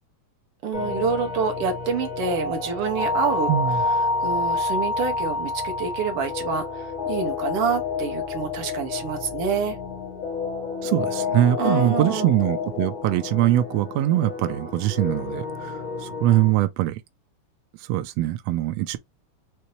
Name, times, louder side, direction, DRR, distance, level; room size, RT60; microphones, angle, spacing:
voice 1, 0.6-3.5 4.2-9.8 11.6-12.3, right 6 dB, 70° right, 1.4 m, -27 dB
sound 1, 0.7-16.5, left 4 dB, 40° left, 1.4 m, -29 dB
voice 2, 3.5-3.8 10.8-17.0 17.9-19.0, right 14 dB, 85° right, 1.5 m, -22 dB
5.6 x 2.7 x 3.1 m
omnidirectional pair, 3.5 m